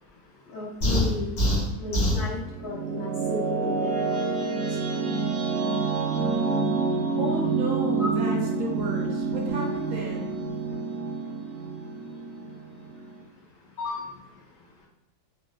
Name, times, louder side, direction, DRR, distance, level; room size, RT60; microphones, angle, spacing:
voice 1, 0.5-1.3 1.8-3.9 8.0-8.1 13.8-14.0, left 3 dB, 80° left, -6 dB, 1.4 m, -33 dB
sound 1, 0.8-2.3, left 1 dB, 60° left, 1.2 m, -23 dB
sound 2, 2.2-13.2, right 4 dB, 90° right, 1.1 m, -28 dB
voice 2, 6.9-10.3, right 1 dB, 65° right, -2 dB, 0.9 m, -33 dB
3.9 x 2.1 x 2.3 m, 0.91 s
omnidirectional pair, 1.6 m